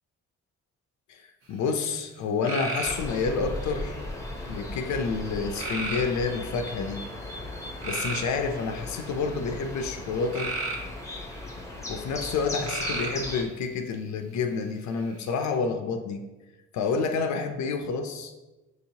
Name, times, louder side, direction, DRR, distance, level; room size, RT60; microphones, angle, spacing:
voice 1, 1.5-3.9 4.5-7.0 7.8-10.5 11.9-16.2 16.7-18.3, left 4 dB, 70° left, 6 dB, 0.5 m, -29 dB
sound 1, 2.4-3.4 5.6-6.4 7.8-9.1 10.3-11.5 12.6-13.3 15.0-15.5, right 2 dB, 45° right, 0.8 m, -34 dB
sound 2, 2.8-13.4, left 2 dB, 10° left, 0.7 m, -37 dB
6.1 x 2.8 x 2.7 m, 1.1 s
cardioid pair, 90°, 30 cm